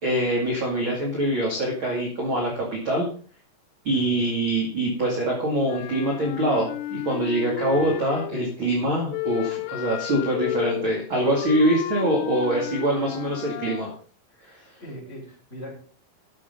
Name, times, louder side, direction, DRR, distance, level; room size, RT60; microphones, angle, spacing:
voice 1, 0.0-3.1 3.8-13.9 14.4-14.6, right 1 dB, 35° right, -1 dB, 2.6 m, -24 dB
Wind instrument woodwind instrument, 5.6-8.5 9.1-13.9, left 16 dB, 85° left, 2.8 m, -32 dB
voice 2, 14.8-15.7, equal, 15° left, -5 dB, 6.0 m, -40 dB
12.5 x 7.7 x 5.4 m, 0.43 s
omnidirectional pair, 4.7 m